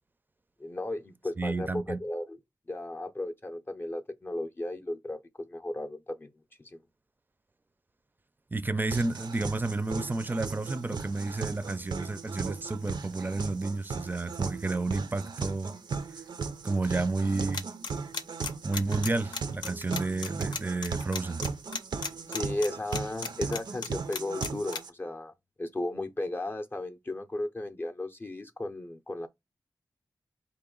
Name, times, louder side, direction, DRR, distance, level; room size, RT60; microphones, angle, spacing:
voice 1, 0.6-2.4 2.7-6.3 6.6-6.8 22.3-25.3 25.6-29.3, left 1 dB, 30° left, 0.5 m, -35 dB
voice 2, 1.4-2.0 8.5-15.7 16.6-17.7 18.6-21.4, right 3 dB, 25° right, 0.4 m, -31 dB
sound 1, 8.9-24.9, right 5 dB, 85° right, 0.5 m, -37 dB
sound 2, 17.5-24.8, left 5 dB, 85° left, 0.6 m, -34 dB
4.1 x 2.9 x 3.7 m
wide cardioid pair, 75°, 7 cm